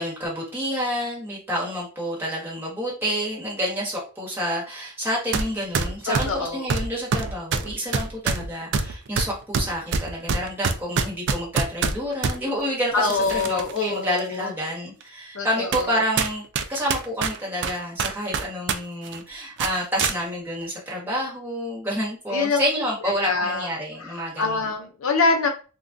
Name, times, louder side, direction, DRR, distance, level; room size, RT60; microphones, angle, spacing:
voice 1, 0.0-24.7, equal, 10° right, -5 dB, 1.1 m, -29 dB
sound 1, 5.3-5.5 5.7-12.4 13.0-13.8 14.2-14.3 15.0-15.1 15.7-15.9 16.2-18.8 19.0-19.2 19.6-20.2, right 5 dB, 55° right, 0.3 m, -25 dB
voice 2, 6.1-6.7 12.9-14.5 15.3-16.0 22.3-22.6 23.2-23.7 24.0-25.5, left 4 dB, 65° left, 4 dB, 0.6 m, -25 dB
3.6 x 2.4 x 2.5 m, 0.36 s
head